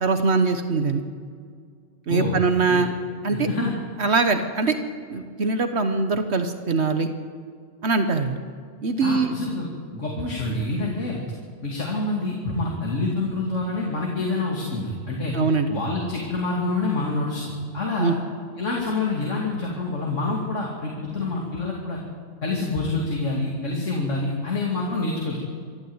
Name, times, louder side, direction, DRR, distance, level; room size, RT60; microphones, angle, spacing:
voice 1, 0.0-1.0 2.1-2.9 3.2-3.5 4.0-4.8 5.1-7.1 7.8-8.4 8.8-9.3 15.3-15.7 18.0-18.1, right 4 dB, 65° right, 7 dB, 1.4 m, -22 dB
voice 2, 3.3-3.7 9.0-11.2 11.6-15.3 15.7-18.2 18.6-22.0 22.4-25.4, left 2 dB, 80° left, -2 dB, 2.9 m, -27 dB
26.0 x 12.5 x 8.0 m, 2.1 s
omnidirectional pair, 1.2 m